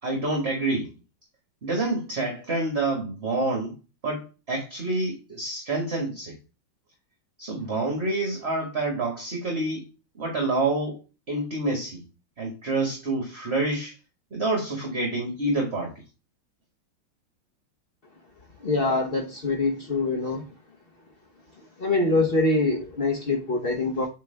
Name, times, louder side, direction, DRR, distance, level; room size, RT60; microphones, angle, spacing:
voice 1, 0.0-0.9 1.6-3.7 4.0-6.4 7.4-9.9 10.1-11.0 11.3-12.0 12.4-13.9 14.3-15.9, right 2 dB, 35° right, 0 dB, 1.6 m, -27 dB
voice 2, 18.6-20.4 21.8-24.1, left 2 dB, 45° left, 2 dB, 0.8 m, -24 dB
8.1 x 3.8 x 3.3 m, 0.31 s
omnidirectional pair, 2.3 m